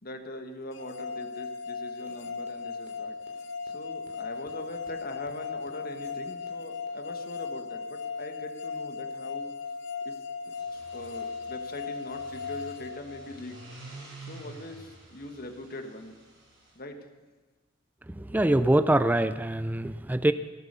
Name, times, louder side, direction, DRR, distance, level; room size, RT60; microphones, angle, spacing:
voice 1, 0.0-3.1 3.6-9.5 10.0-10.1 10.4-13.6 14.2-16.2 16.7-17.0, left 1 dB, 50° left, 6 dB, 1.5 m, -42 dB
sound 1, 0.7-13.7, left 5 dB, 70° left, 1.1 m, -37 dB
sound 2, 2.1-2.2 2.5-2.6 2.9-3.0 3.2-3.3 3.6-3.7 4.0-4.1 4.4-4.5 4.8-4.9 5.2-5.3 5.6-5.7 6.0-6.1 6.5-6.6 6.9-7.0, right 1 dB, 40° right, 2.9 m, -55 dB
sound 3, 10.5-16.7, right 2 dB, 80° right, 5.2 m, -49 dB
voice 2, 18.1-20.3, right 1 dB, 10° right, 12 dB, 0.4 m, -24 dB
17.5 x 11.0 x 6.8 m, 1.3 s
head